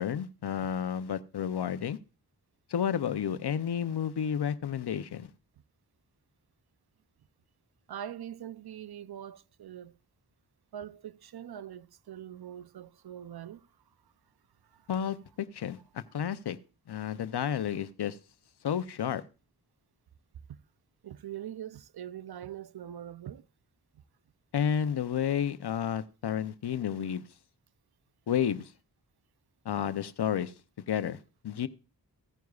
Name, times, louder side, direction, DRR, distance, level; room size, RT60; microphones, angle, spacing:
voice 1, 0.0-2.0 2.7-5.3 14.9-16.6 16.9-18.2 18.6-19.2 24.5-27.2 28.3-28.7 29.6-30.5 30.9-31.2 31.4-31.7, left 8 dB, 85° left, 0.7 m, -31 dB
voice 2, 7.9-9.9 10.7-13.7 14.6-14.9 20.5-20.6 21.0-23.5, right 10 dB, 75° right, 0.6 m, -43 dB
15.5 x 9.3 x 2.4 m
cardioid pair, 45°, 38 cm